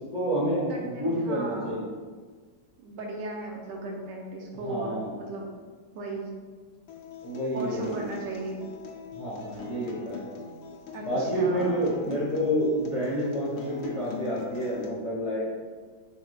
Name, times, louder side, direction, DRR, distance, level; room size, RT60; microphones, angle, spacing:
voice 1, 0.1-1.8 4.5-5.2 7.2-8.1 9.1-10.2 11.1-15.5, equal, 30° left, -8 dB, 0.7 m, -29 dB
voice 2, 0.7-1.8 2.8-5.5 5.9-6.3 7.5-8.6 10.9-11.8, right 2 dB, 75° right, -1 dB, 1.2 m, -36 dB
Acoustic guitar, 6.9-14.9, left 5 dB, 70° left, 1.0 m, -42 dB
6.0 x 3.2 x 2.2 m, 1.5 s
omnidirectional pair, 2.1 m